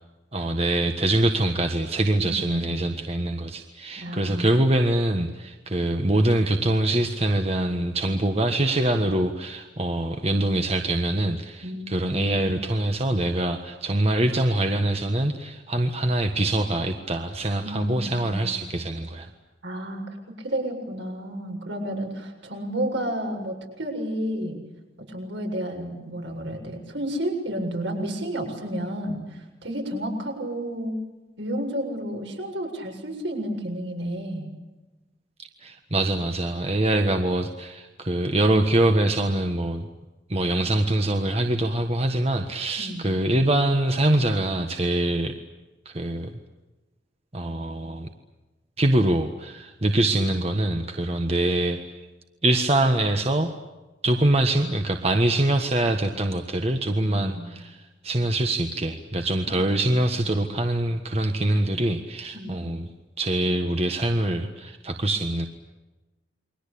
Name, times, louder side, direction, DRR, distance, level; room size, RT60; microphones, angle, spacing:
voice 1, 0.3-19.3 35.6-39.9 40.3-45.4 45.8-46.3 47.3-48.1 48.8-52.0 52.4-53.5 54.0-62.9 63.2-65.5, right 1 dB, 35° right, 5 dB, 1.5 m, -24 dB
voice 2, 2.1-2.9 4.0-4.6 11.6-12.6 17.6-18.6 19.6-20.0 20.4-24.6 25.0-31.0 31.4-34.5 42.8-43.1 57.1-57.5 62.3-62.7, right 1 dB, 70° right, 3 dB, 7.4 m, -31 dB
29.5 x 23.5 x 8.6 m, 1.1 s
head